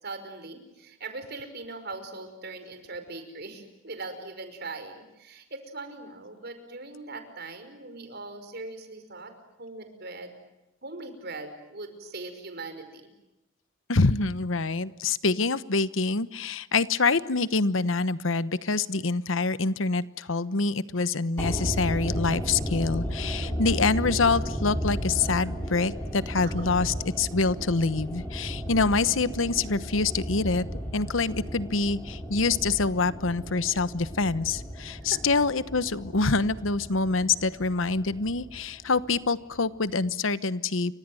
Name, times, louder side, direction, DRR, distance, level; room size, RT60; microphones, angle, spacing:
voice 1, 0.0-9.3 9.6-10.3 10.8-13.1 23.4-23.6 26.4-26.7 35.1-35.2, right 3 dB, 55° right, 8 dB, 5.4 m, -40 dB
voice 2, 13.9-30.6 30.9-40.9, left 3 dB, 75° left, 15 dB, 1.1 m, -26 dB
sound 1, 21.4-39.6 39.8-39.9, equal, 10° left, 6.4 m, -34 dB
29.5 x 25.0 x 7.8 m, 0.93 s
head